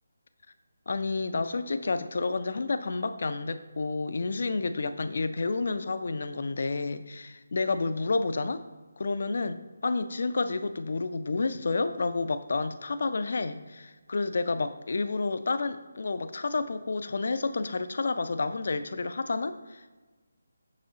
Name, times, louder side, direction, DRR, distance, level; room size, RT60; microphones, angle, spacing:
voice 1, 0.9-8.6 9.0-20.0, left 3 dB, 50° left, 11 dB, 0.3 m, -30 dB
6.7 x 5.5 x 2.7 m, 1.3 s
figure-of-eight pair, 150°, 0 cm